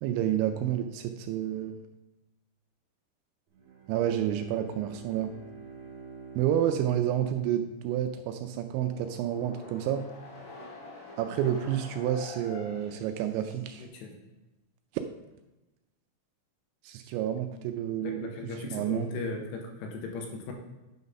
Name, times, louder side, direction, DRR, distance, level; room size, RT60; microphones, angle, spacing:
voice 1, 0.0-1.8 3.9-5.4 6.4-10.1 11.2-13.9 16.8-18.3 18.6-19.1, right 10 dB, 85° right, 7 dB, 2.7 m, -29 dB
Bowed string instrument, 3.5-8.3, right 5 dB, 55° right, 2.5 m, -48 dB
sound 1, 8.8-13.8, left 2 dB, 55° left, 3.8 m, -46 dB
voice 2, 13.8-14.2 18.0-20.5, left 3 dB, 75° left, 2 dB, 2.9 m, -37 dB
9.4 x 4.0 x 5.4 m, 1.0 s
omnidirectional pair, 5.5 m